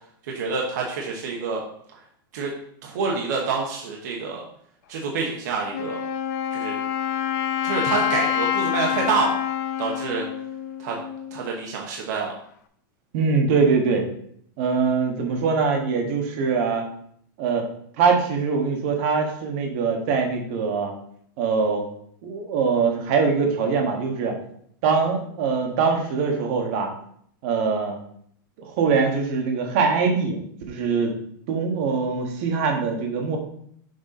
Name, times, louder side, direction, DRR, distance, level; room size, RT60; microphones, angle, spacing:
voice 1, 0.2-1.6 1.9-2.0 2.3-2.5 2.8-4.4 4.9-6.0 6.5-6.8 7.6-9.3 9.8-10.3 10.8-11.0 11.3-12.3, right 5 dB, 50° right, -1 dB, 1.1 m, -27 dB
Wind instrument woodwind instrument, 5.7-11.5, left 10 dB, 50° left, 0.5 m, -27 dB
voice 2, 13.1-14.0 14.6-16.8 17.4-17.7 18.0-20.9 21.4-21.8 22.2-24.4 24.8-26.9 27.4-28.0 28.7-30.4 30.7-31.1 31.5-33.4, right 5 dB, 35° right, 3 dB, 1.2 m, -22 dB
6.4 x 4.2 x 4.2 m, 0.66 s
supercardioid pair, 180°, 12 cm